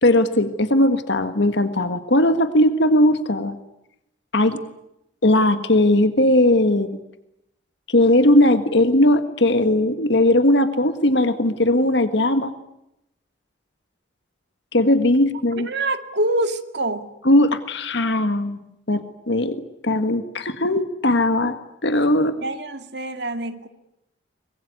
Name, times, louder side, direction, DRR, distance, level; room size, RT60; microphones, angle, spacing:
voice 1, 0.0-3.6 4.3-4.6 5.2-7.0 7.9-12.5 14.7-15.7 17.3-18.6 18.9-19.6 19.8-21.6 21.8-22.4, left 1 dB, 65° left, 9 dB, 1.7 m, -18 dB
voice 2, 15.6-17.1 22.4-23.7, right 2 dB, 60° right, 8 dB, 2.2 m, -25 dB
24.5 x 22.0 x 9.6 m, 0.83 s
head